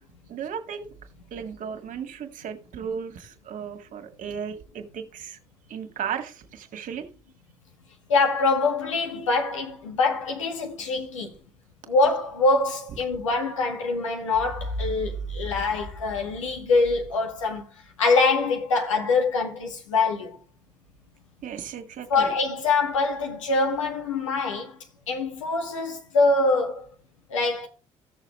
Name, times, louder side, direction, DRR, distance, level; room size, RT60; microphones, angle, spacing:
voice 1, 0.3-0.9 1.3-5.4 5.7-7.1 21.4-22.3, right 7 dB, 55° right, 1.8 m, -35 dB
voice 2, 8.1-11.3 11.9-17.6 18.0-20.4 22.1-24.8 25.1-26.8 27.3-27.7, left 3 dB, 90° left, 1.8 m, -24 dB
15.0 x 6.7 x 3.1 m
hypercardioid pair, 50°, 16 cm